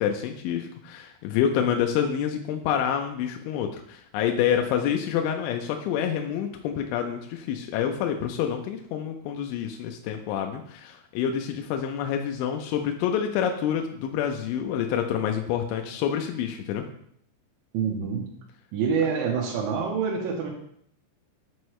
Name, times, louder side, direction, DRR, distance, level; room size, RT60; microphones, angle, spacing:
voice 1, 0.0-16.9, left 9 dB, 85° left, 4 dB, 2.9 m, -27 dB
voice 2, 17.7-18.2 18.7-20.5, right 6 dB, 85° right, -3 dB, 3.1 m, -26 dB
7.2 x 4.6 x 3.1 m, 0.68 s
omnidirectional pair, 5.3 m